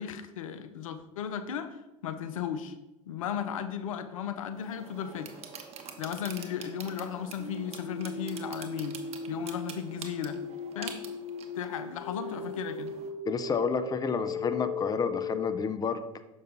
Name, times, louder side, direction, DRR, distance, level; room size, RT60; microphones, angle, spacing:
voice 1, 0.0-2.7 3.1-5.3 6.0-9.0 9.3-10.4 10.7-11.0 11.6-12.9, left 8 dB, 80° left, 9 dB, 0.6 m, -35 dB
sound 1, 4.5-13.1, right 6 dB, 35° right, 1.0 m, -46 dB
sound 2, 7.4-15.6, left 4 dB, 40° left, 1.8 m, -37 dB
voice 2, 13.3-16.0, left 5 dB, 20° left, 10 dB, 0.6 m, -30 dB
6.7 x 5.5 x 3.9 m, 0.98 s
hypercardioid pair, 80°, 17 cm